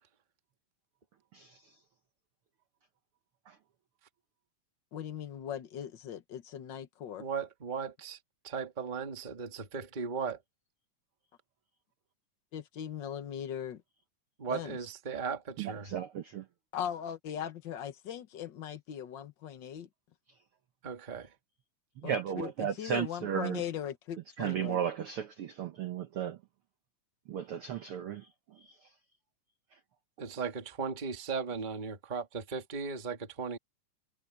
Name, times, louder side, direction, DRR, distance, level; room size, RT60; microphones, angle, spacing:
voice 1, 4.9-7.2 12.5-13.8 14.5-14.8 16.7-19.9 22.0-24.8, left 9 dB, 80° left, 1.0 m, -39 dB
voice 2, 7.2-8.2 8.4-10.4 14.4-15.9 20.8-21.3 30.2-33.6, right 5 dB, 20° right, 1.3 m, -37 dB
voice 3, 15.6-16.4 22.0-23.6 24.4-26.4 27.3-28.9, right 9 dB, 70° right, 1.3 m, -35 dB
omnidirectional pair, 3.8 m